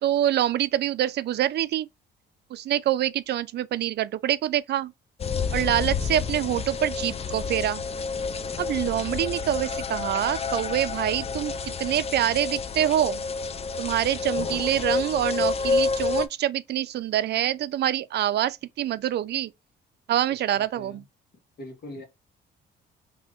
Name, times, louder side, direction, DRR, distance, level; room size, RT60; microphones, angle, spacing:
voice 1, 0.0-1.9 2.5-4.9 5.5-7.8 8.6-13.2 13.8-19.5 20.1-21.0, right 12 dB, 60° right, 0.4 m, -26 dB
sound 1, 5.2-16.3, left 4 dB, 30° left, 0.4 m, -29 dB
voice 2, 20.3-21.1 21.6-22.0, left 1 dB, 55° left, 1.4 m, -42 dB
2.8 x 2.5 x 3.5 m
cardioid pair, 90°, 20 cm